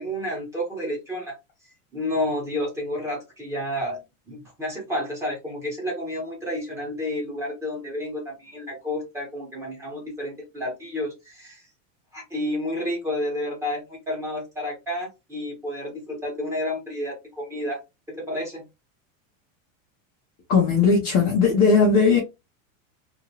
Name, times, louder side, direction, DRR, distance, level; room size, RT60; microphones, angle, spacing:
voice 1, 0.0-1.4 1.9-4.0 4.3-11.7 12.1-17.8 18.1-18.6, left 1 dB, 5° right, 1.1 m, -30 dB
voice 2, 20.5-22.2, left 4 dB, 25° left, 0.5 m, -18 dB
2.8 x 2.5 x 2.8 m
supercardioid pair, 175°, 39 cm